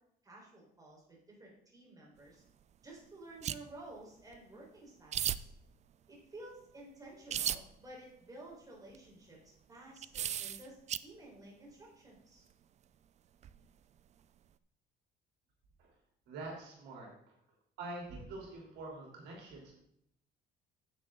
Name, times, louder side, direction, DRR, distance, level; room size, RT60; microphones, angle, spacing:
voice 1, 0.2-2.4 2.8-5.5 6.1-12.4, right 1 dB, 20° right, -3 dB, 4.3 m, -53 dB
sound 1, 3.4-3.6 4.3-4.4 5.1-5.4 7.3-7.6 8.9-9.0 10.0-11.0 13.4-13.6, right 10 dB, 40° right, 0.4 m, -34 dB
voice 2, 16.3-17.4 17.8-19.8, right 2 dB, 85° right, -1 dB, 3.3 m, -46 dB
10.0 x 8.3 x 3.8 m, 0.73 s
cardioid pair, 110°, 17 cm